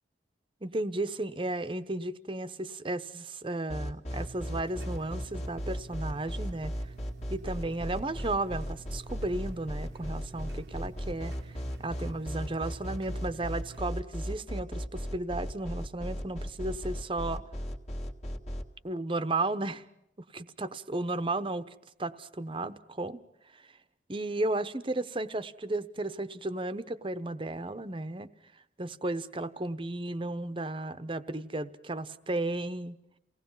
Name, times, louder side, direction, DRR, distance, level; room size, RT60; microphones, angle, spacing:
voice 1, 0.6-6.7 7.3-11.3 11.8-17.4 18.8-19.8 20.2-21.7 22.0-23.2 24.1-28.3 28.8-33.0, right 2 dB, 30° right, 12 dB, 0.9 m, -34 dB
sound 1, 3.7-18.6, equal, 35° left, 1.9 m, -36 dB
sound 2, 4.1-13.8, right 3 dB, 65° right, 0.9 m, -49 dB
29.0 x 18.0 x 5.6 m, 0.83 s
head